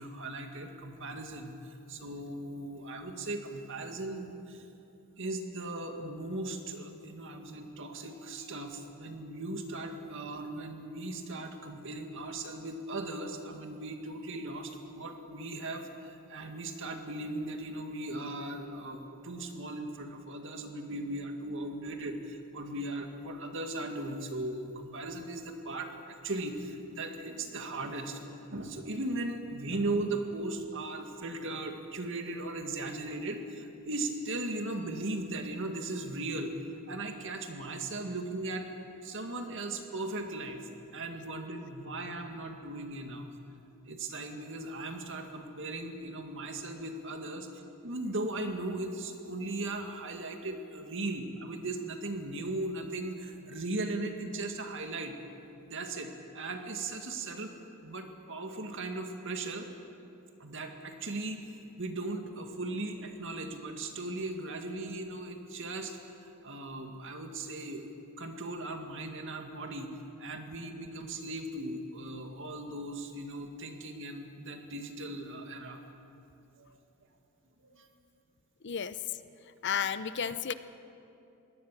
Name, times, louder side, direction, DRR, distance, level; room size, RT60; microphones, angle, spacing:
voice 1, 0.0-4.7 5.2-36.5 36.9-38.7 39.0-43.3 43.9-55.1 55.7-57.5 57.8-59.7 60.4-67.9 68.2-69.9 70.2-75.8 76.6-76.7 77.6-77.9, right 2 dB, 60° right, 4 dB, 2.1 m, -38 dB
voice 2, 78.6-79.0 79.6-80.5, left 7 dB, 55° left, 13 dB, 0.7 m, -32 dB
22.5 x 18.0 x 7.5 m, 2.8 s
head